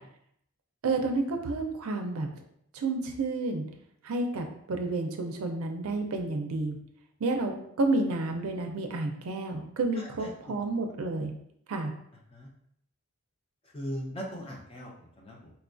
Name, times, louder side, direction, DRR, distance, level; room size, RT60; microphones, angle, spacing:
voice 1, 0.8-2.3 2.7-3.6 4.0-6.8 7.2-11.3 11.7-11.9, right 3 dB, 75° right, 4 dB, 0.4 m, -30 dB
voice 2, 9.9-10.6 12.3-12.5 13.6-15.5, equal, 25° left, -1 dB, 0.5 m, -40 dB
4.2 x 2.3 x 2.5 m, 0.72 s
head